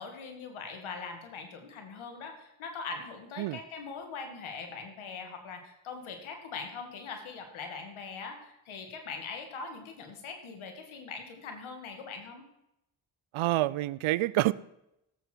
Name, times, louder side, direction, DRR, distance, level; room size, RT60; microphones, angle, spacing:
voice 1, 0.0-12.4, left 5 dB, 85° left, 2.1 m, -41 dB
voice 2, 13.3-14.5, right 17 dB, 85° right, 0.5 m, -27 dB
17.0 x 7.9 x 4.5 m
supercardioid pair, 45°, 47 cm